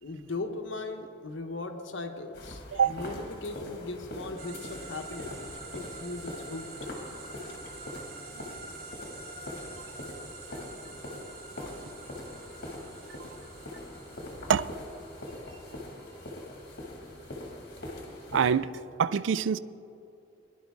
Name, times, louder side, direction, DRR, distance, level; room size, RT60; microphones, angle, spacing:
voice 1, 0.0-5.3 5.7-6.7, left 2 dB, 70° left, 1.0 m, -38 dB
sound 1, 2.3-18.5, left 1 dB, 55° left, 2.1 m, -43 dB
sound 2, 4.4-18.6, right 3 dB, 50° right, 1.2 m, -47 dB
voice 2, 18.3-19.6, right 7 dB, 70° right, 0.3 m, -26 dB
19.5 x 11.0 x 3.6 m
head